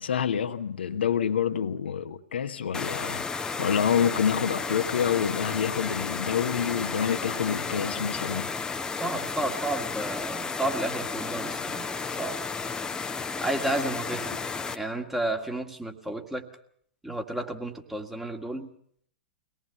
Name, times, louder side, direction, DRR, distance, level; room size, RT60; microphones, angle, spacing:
voice 1, 0.0-8.5, left 8 dB, 65° left, 1.2 m, -27 dB
sound 1, 2.7-14.8, left 4 dB, 10° left, 1.1 m, -33 dB
voice 2, 9.0-11.9 12.2-12.4 13.4-14.4 14.7-16.5 17.0-18.7, right 1 dB, 5° right, 2.0 m, -31 dB
23.5 x 19.0 x 6.9 m
figure-of-eight pair, 105°, 6 cm